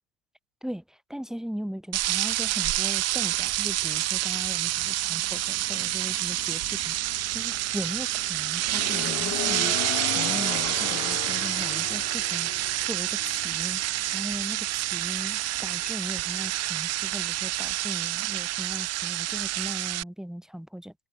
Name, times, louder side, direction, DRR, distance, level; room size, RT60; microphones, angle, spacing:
voice 1, 0.6-9.8 10.1-13.8 14.1-20.9, equal, ahead, 1.4 m, -38 dB
sound 1, 1.9-20.0, right 15 dB, 45° right, 2.7 m, -28 dB
sound 2, 3.4-17.8, left 28 dB, 70° left, 2.0 m, -39 dB
supercardioid pair, 120°, 36 cm